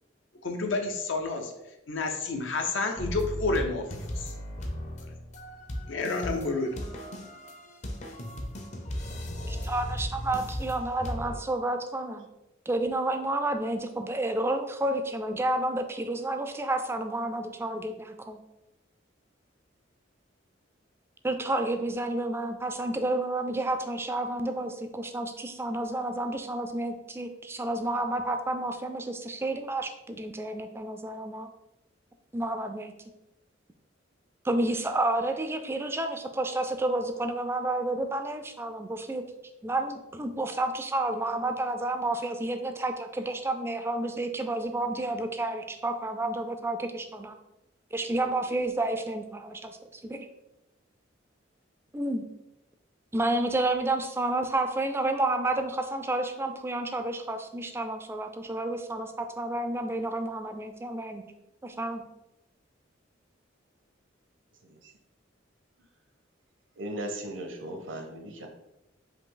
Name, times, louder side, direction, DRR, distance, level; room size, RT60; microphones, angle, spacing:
voice 1, 0.4-1.5 1.9-3.8 4.1-4.3 5.9-6.7, left 3 dB, 75° left, 4 dB, 0.7 m, -29 dB
sound 1, 3.0-11.4, equal, 35° left, 0.6 m, -36 dB
voice 2, 9.5-12.3 12.7-18.4 21.2-31.5 32.3-32.9 34.4-39.2 39.6-47.4 47.9-50.3 51.9-52.3 53.1-61.2 61.6-62.0, right 2 dB, 15° right, 6 dB, 0.3 m, -30 dB
voice 3, 66.8-68.5, right 1 dB, 75° right, 4 dB, 0.8 m, -37 dB
4.9 x 2.7 x 3.8 m, 0.92 s
head